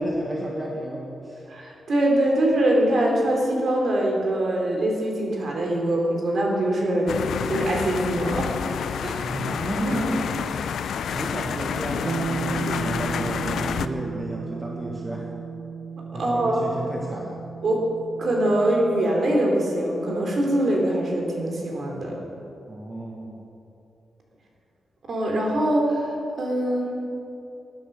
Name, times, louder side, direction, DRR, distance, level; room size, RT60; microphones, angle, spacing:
voice 1, 0.0-1.4 9.2-10.8 11.1-15.3 16.1-17.4 22.7-23.4, right 1 dB, 15° right, -2 dB, 1.6 m, -32 dB
voice 2, 1.5-7.2 7.5-8.6 9.0-9.3 9.8-10.0 16.1-16.6 17.6-17.8 18.2-22.2 25.1-26.1 26.4-26.9, right 1 dB, 50° right, -1 dB, 3.4 m, -23 dB
sound 1, 7.1-13.9, left 7 dB, 85° left, 0.6 m, -29 dB
sound 2, 12.0-21.8, right 6 dB, 65° right, 0.6 m, -36 dB
20.0 x 10.5 x 6.7 m, 2.8 s
wide cardioid pair, 160°, 0 cm